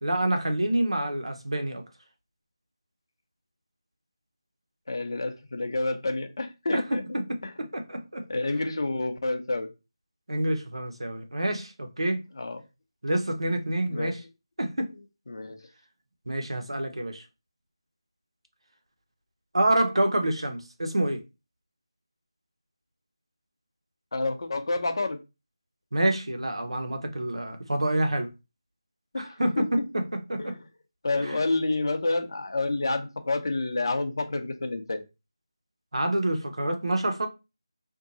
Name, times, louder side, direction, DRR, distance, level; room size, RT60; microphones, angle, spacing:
voice 1, 0.0-1.8 6.7-8.3 10.3-12.2 13.0-14.2 14.6-14.9 16.3-17.2 19.5-21.2 25.9-28.3 29.2-30.5 31.2-31.4 35.9-37.3, right 1 dB, 80° right, 0.8 m, -27 dB
voice 2, 4.9-7.0 7.4-7.5 8.3-9.7 12.4-12.6 13.9-14.2 15.3-15.6 24.1-25.2 29.1-29.6 30.4-30.6 31.0-35.0, left 2 dB, 50° left, 0.7 m, -29 dB
2.7 x 2.3 x 3.9 m
figure-of-eight pair, 165°, 3 cm